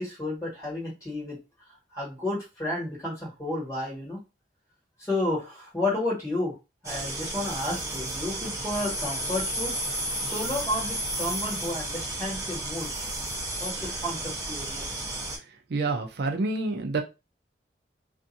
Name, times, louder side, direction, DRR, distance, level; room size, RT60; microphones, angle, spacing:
voice 1, 0.0-1.4 1.9-4.2 5.0-6.5 6.8-9.7 10.2-12.9 13.6-14.9, left 1 dB, 15° left, -6 dB, 1.5 m, -31 dB
sound 1, 6.8-15.4, right 2 dB, 15° right, 0.7 m, -34 dB
sound 2, 8.7-13.7, equal, 50° left, 1.1 m, -35 dB
voice 2, 15.7-17.0, right 3 dB, 60° right, 4 dB, 0.4 m, -27 dB
2.5 x 2.5 x 2.6 m, 0.26 s
head